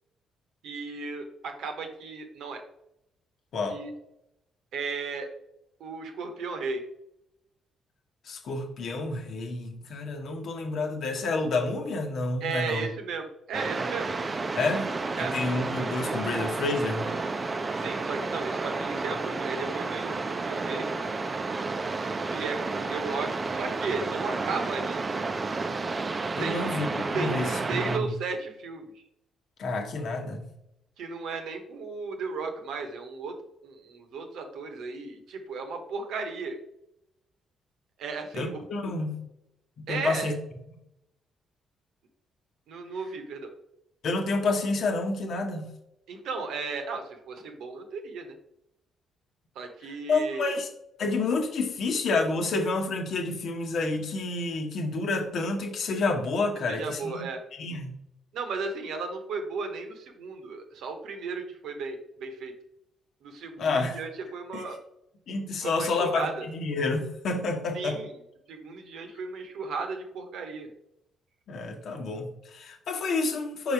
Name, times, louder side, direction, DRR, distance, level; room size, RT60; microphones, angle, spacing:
voice 1, 0.6-2.6 3.7-3.9 4.7-5.3 5.8-6.8 12.4-14.1 14.5-15.4 17.7-20.9 22.0-25.0 26.4-26.8 27.1-29.1 31.0-33.4 33.6-36.6 38.0-38.6 39.9-40.4 42.7-43.5 46.1-48.4 49.5-50.5 56.7-57.4 58.3-62.5 63.2-64.8 65.6-66.5 67.7-68.2 68.5-70.7, right 4 dB, 65° right, 5 dB, 1.0 m, -35 dB
voice 2, 8.2-12.9 14.6-17.1 26.4-28.1 29.6-30.5 38.3-39.3 39.8-40.3 44.0-45.7 50.1-50.7 51.0-57.3 57.6-58.0 63.6-64.0 64.5-64.6 65.3-66.2 66.5-68.0 71.5-73.7, left 3 dB, 60° left, 4 dB, 1.1 m, -29 dB
sound 1, 13.5-28.0, right 3 dB, 35° right, 0.6 m, -31 dB
5.2 x 4.0 x 4.6 m, 0.80 s
figure-of-eight pair, 40°, 0 cm